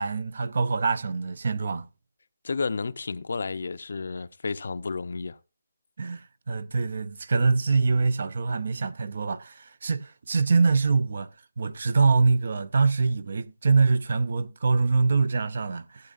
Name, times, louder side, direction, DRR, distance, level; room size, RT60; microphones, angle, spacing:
voice 1, 0.0-1.9 6.0-11.3 11.6-16.1, right 4 dB, 50° right, 0.6 m, -24 dB
voice 2, 2.4-5.4, left 4 dB, 60° left, 0.5 m, -31 dB
16.0 x 8.4 x 2.5 m
hypercardioid pair, 170°, 0 cm